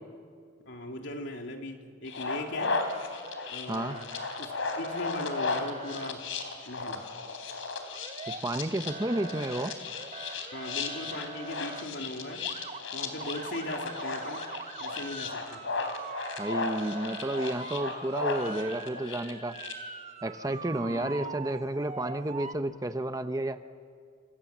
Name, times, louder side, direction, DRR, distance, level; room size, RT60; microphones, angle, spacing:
voice 1, 0.7-2.7 3.5-4.1 4.4-4.5 4.8-6.2 6.7-7.0 10.5-12.4 12.9-14.4 14.8-15.6 20.8-21.3, left 1 dB, 65° left, 2 dB, 3.2 m, -39 dB
sound 1, 2.1-19.7, left 4 dB, 90° left, 3.7 m, -35 dB
Motor vehicle (road) / Siren, 2.6-3.6 3.9-4.4 4.8-6.1 7.9-8.6 8.9-11.8 12.3-12.8 13.2-22.5, right 4 dB, 35° right, 1.2 m, -43 dB
voice 2, 8.3-9.7 16.4-19.6 20.2-23.6, right 1 dB, 20° right, 9 dB, 0.8 m, -31 dB
27.5 x 27.5 x 7.4 m, 2.1 s
head